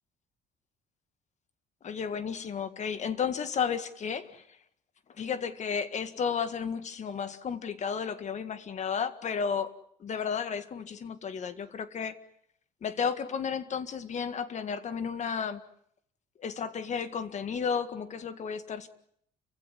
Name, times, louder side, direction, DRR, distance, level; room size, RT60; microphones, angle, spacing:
voice 1, 1.8-4.4 5.2-9.7 10.0-12.2 12.8-15.6 16.4-18.9, left 6 dB, 45° left, 12 dB, 1.9 m, -33 dB
30.0 x 15.5 x 9.8 m, 0.68 s
cardioid pair, 110°, 17 cm